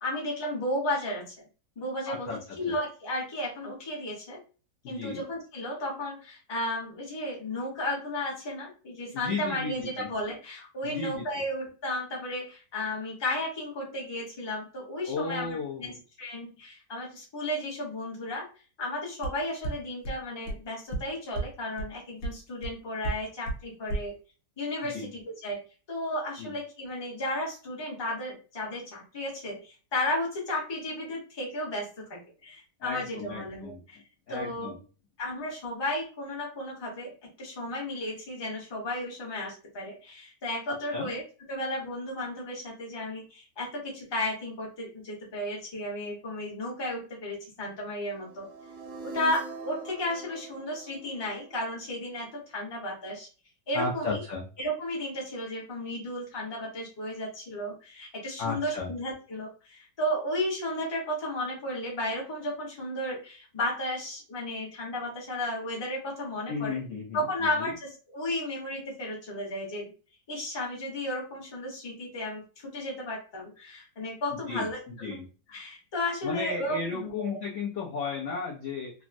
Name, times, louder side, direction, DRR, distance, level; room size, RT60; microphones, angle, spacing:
voice 1, 0.0-1.3 1.8-4.4 4.9-15.9 16.2-18.5 18.8-24.1 24.6-25.6 25.9-34.0 34.3-34.7 35.2-37.1 37.4-41.2 41.5-48.5 49.0-53.3 53.7-54.2 54.6-66.8 67.1-69.9 70.3-75.2 75.5-77.4, left 1 dB, 30° left, -2 dB, 0.4 m, -34 dB
voice 2, 2.1-2.7 4.8-5.2 9.1-10.1 10.8-11.4 15.1-16.0 24.9-25.1 26.4-26.5 32.8-33.8 34.3-34.8 40.9-41.1 53.7-54.4 58.4-58.9 66.5-67.3 67.6-67.7 74.5-75.3 76.2-78.9, left 4 dB, 85° left, -2 dB, 0.6 m, -34 dB
sound 1, 19.2-19.3 19.6-19.7 20.0-20.1 20.5-20.6 20.9-21.0 21.3-21.4 21.8-21.9 22.2-22.3 22.6-22.7 23.0-23.1 23.5-23.6 23.9-24.0, right 2 dB, 65° left, 1.0 m, -30 dB
sound 2, 48.2-52.2, right 5 dB, 65° right, 0.8 m, -42 dB
3.4 x 2.0 x 2.5 m, 0.36 s
omnidirectional pair, 2.0 m